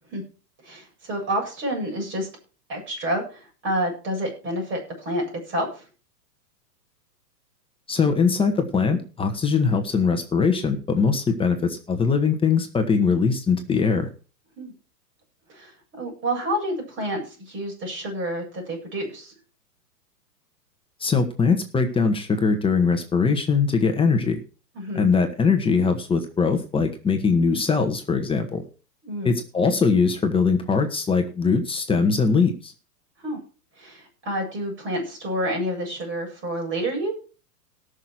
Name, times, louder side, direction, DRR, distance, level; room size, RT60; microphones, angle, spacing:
voice 1, 0.6-2.3 2.7-5.8 14.6-14.7 15.5-19.3 24.7-25.1 29.0-29.4 33.2-33.4 33.8-37.1, right 1 dB, 25° right, 1 dB, 7.9 m, -29 dB
voice 2, 7.9-14.1 21.0-24.4 24.9-28.6 29.2-32.7, left 5 dB, 10° left, 5 dB, 1.7 m, -21 dB
18.0 x 6.6 x 4.6 m, 0.36 s
hypercardioid pair, 125°, 49 cm